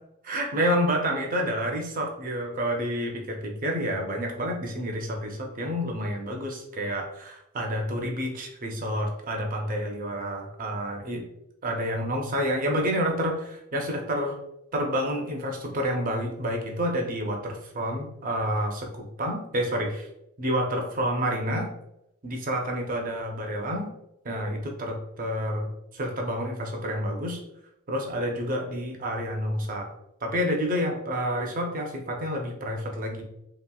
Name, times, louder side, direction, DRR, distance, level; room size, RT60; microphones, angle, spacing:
voice 1, 0.2-11.2 11.6-14.4 14.7-20.1 20.4-21.7 22.2-23.9 24.2-27.4 27.9-29.9 30.2-33.2, equal, 40° right, 1 dB, 0.6 m, -29 dB
2.9 x 2.9 x 2.3 m, 0.82 s
head